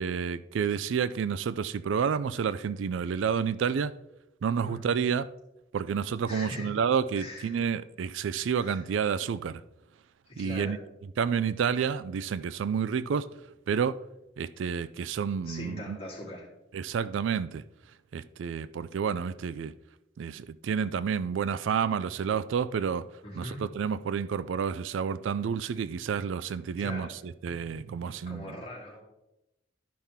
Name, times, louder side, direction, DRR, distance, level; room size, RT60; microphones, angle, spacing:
voice 1, 0.0-3.9 4.4-5.3 5.7-9.6 10.4-10.8 11.2-13.3 13.7-14.0 14.4-16.0 16.7-17.6 18.1-19.8 20.2-23.1 23.4-28.6, right 7 dB, 70° right, 0.3 m, -30 dB
voice 2, 6.3-6.7 7.1-7.6 8.6-9.2 10.3-10.7 15.4-16.5 23.2-23.6 26.8-27.1 28.0-29.0, left 1 dB, 30° left, 3.1 m, -41 dB
12.5 x 5.7 x 3.5 m
head